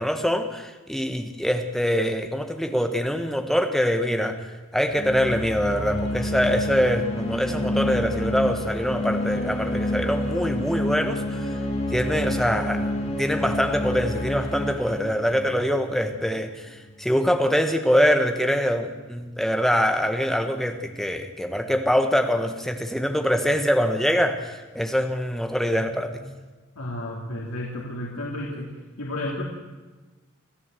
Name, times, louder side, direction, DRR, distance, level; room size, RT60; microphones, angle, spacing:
voice 1, 0.0-4.4 4.7-11.6 11.9-12.9 13.2-26.4, equal, ahead, 5 dB, 1.4 m, -24 dB
sound 1, 4.9-16.4, left 1 dB, 30° left, 3.0 m, -29 dB
sound 2, 5.7-17.7, right 1 dB, 40° right, 6.7 m, -48 dB
voice 2, 26.8-28.7 29.0-29.4, left 1 dB, 85° left, -3 dB, 3.1 m, -32 dB
26.0 x 15.0 x 7.8 m, 1.3 s
head